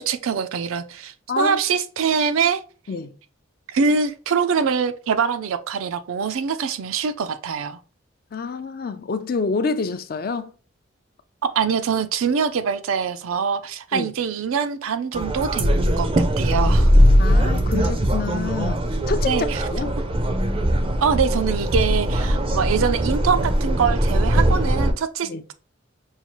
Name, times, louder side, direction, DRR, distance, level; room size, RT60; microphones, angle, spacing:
voice 1, 0.0-2.6 3.7-7.8 11.4-16.9 19.3-19.6 21.0-25.5, right 6 dB, 90° right, 0.4 m, -24 dB
voice 2, 1.3-1.6 2.9-3.1 8.3-10.5 13.9-14.1 17.2-19.3 19.7-20.0 25.2-25.4, left 4 dB, 45° left, 0.4 m, -27 dB
sound 1, 15.1-24.9, equal, 25° right, 0.4 m, -20 dB
5.6 x 2.3 x 3.0 m
head